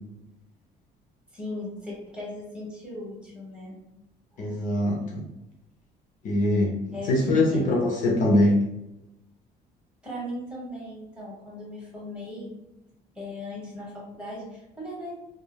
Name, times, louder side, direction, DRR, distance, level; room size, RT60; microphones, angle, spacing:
voice 1, 1.3-3.8 4.3-4.7 6.9-7.9 10.0-12.5 13.1-15.1, left 1 dB, 5° right, -5 dB, 1.3 m, -38 dB
voice 2, 4.4-5.2 6.2-6.7 7.1-8.6, left 1 dB, 50° left, -2 dB, 0.6 m, -22 dB
3.1 x 2.2 x 2.3 m, 0.91 s
cardioid pair, 110°, 17 cm